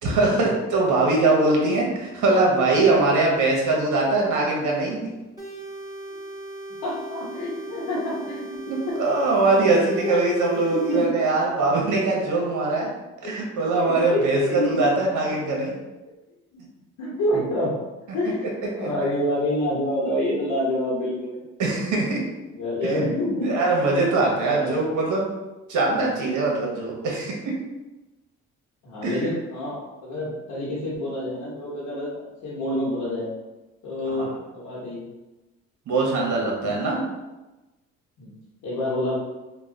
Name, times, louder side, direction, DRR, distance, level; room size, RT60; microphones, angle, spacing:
voice 1, 0.0-5.1 8.7-12.9 13.2-15.8 18.8-18.9 21.6-22.2 22.8-22.9 23.4-25.3 25.7-27.5 29.0-29.2 34.1-34.3 35.9-37.0, right 2 dB, 75° right, -2 dB, 1.1 m, -22 dB
sound 1, 5.4-11.1, right 1 dB, 10° right, 1.4 m, -38 dB
voice 2, 6.8-8.9 10.0-10.2 10.7-11.1 13.2-13.3 13.7-14.9 17.0-17.7 18.1-18.5 18.8-21.3 22.5-23.5 24.4-24.8 25.9-26.1 28.8-33.3 33.8-35.0 36.6-36.8 38.2-38.3 38.6-39.2, left 1 dB, 80° left, -8 dB, 1.1 m, -27 dB
3.1 x 2.3 x 3.7 m, 1.1 s
cardioid pair, 90°, 30 cm